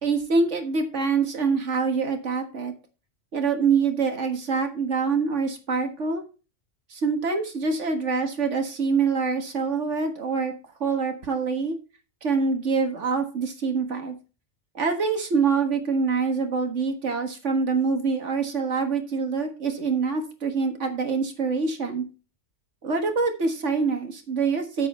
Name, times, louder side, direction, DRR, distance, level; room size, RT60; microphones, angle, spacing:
voice 1, 0.0-2.7 3.3-6.2 6.9-10.5 10.8-11.8 12.2-14.2 14.8-22.0 22.8-24.9, right 5 dB, 75° right, 5 dB, 1.8 m, -25 dB
8.4 x 7.8 x 4.3 m, 0.32 s
omnidirectional pair, 1.2 m